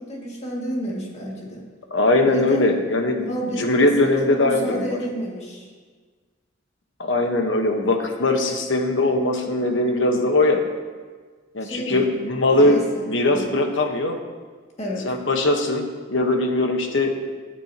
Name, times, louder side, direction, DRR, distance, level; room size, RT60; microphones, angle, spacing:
voice 1, 0.0-1.6 2.2-2.7 3.2-5.7 11.6-12.1 12.5-13.6 14.8-15.1, equal, 30° left, -3 dB, 2.1 m, -31 dB
voice 2, 1.9-3.2 3.5-5.0 7.0-10.6 11.5-12.8 13.1-14.2 15.0-17.1, left 2 dB, 65° left, 4 dB, 1.2 m, -20 dB
17.5 x 9.1 x 2.9 m, 1.5 s
head